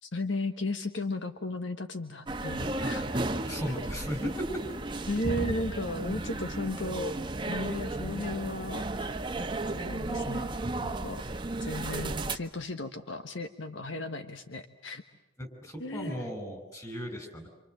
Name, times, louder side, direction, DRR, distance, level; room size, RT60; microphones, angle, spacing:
voice 1, 0.0-3.4 5.1-7.1 7.5-9.0 9.6-10.5 10.8-11.2 11.6-15.0 15.8-16.2 16.7-16.8, left 2 dB, 65° left, 8 dB, 1.3 m, -35 dB
sound 1, 2.3-12.4, right 2 dB, 25° right, 1.1 m, -34 dB
voice 2, 3.5-4.6 15.4-17.5, equal, 15° left, 5 dB, 5.9 m, -36 dB
28.0 x 27.0 x 7.9 m, 0.94 s
head